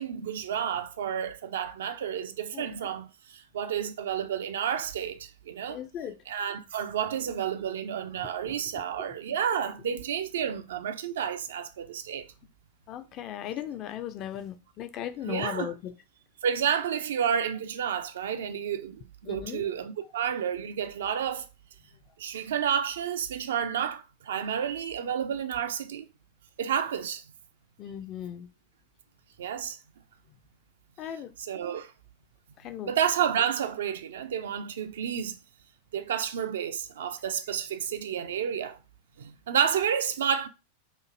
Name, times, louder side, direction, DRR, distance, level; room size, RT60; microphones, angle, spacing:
voice 1, 0.0-5.8 6.3-12.3 15.3-15.7 16.4-21.5 22.2-26.0 26.6-27.2 29.4-29.8 31.4-31.9 32.8-35.4 35.9-38.8 39.2-40.5, right 8 dB, 60° right, 0.3 m, -30 dB
voice 2, 5.7-6.2 9.0-9.1 12.9-15.9 19.2-19.6 27.8-28.5 31.0-31.3 32.6-32.9, left 10 dB, 35° left, 0.3 m, -37 dB
2.9 x 2.5 x 2.5 m
figure-of-eight pair, 90°, 0 cm